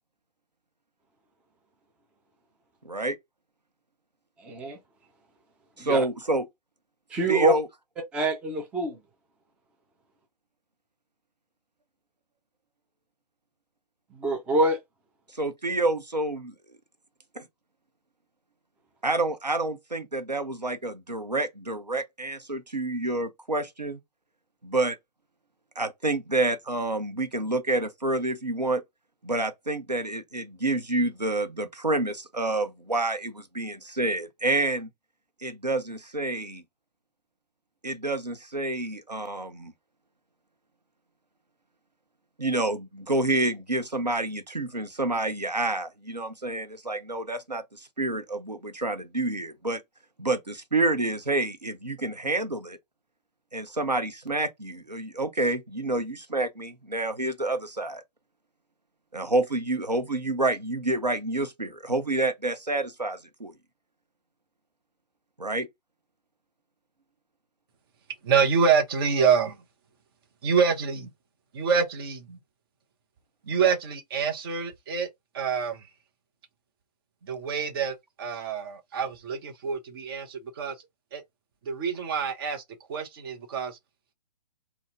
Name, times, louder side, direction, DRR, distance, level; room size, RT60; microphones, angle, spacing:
voice 1, 2.8-3.2 5.8-6.4 7.3-7.7 15.4-16.5 17.4-17.5 19.0-24.0 24.6-25.0 25.8-28.8 29.2-34.9 35.4-36.6 37.8-39.7 42.4-47.6 48.0-49.8 50.2-52.8 53.5-58.0 59.1-63.5 65.4-65.7, right 2 dB, 85° right, 0.9 m, -28 dB
voice 2, 4.4-4.8 5.8-6.0 7.1-7.5 8.1-9.0 14.2-14.8, right 2 dB, 5° right, 0.5 m, -25 dB
voice 3, 68.2-69.6 70.4-71.1 71.5-72.4 73.4-75.1 75.3-75.9 77.2-80.8 81.1-81.2 81.6-82.6 82.9-83.8, right 6 dB, 35° right, 0.9 m, -26 dB
4.1 x 2.3 x 3.7 m
figure-of-eight pair, 125°, 21 cm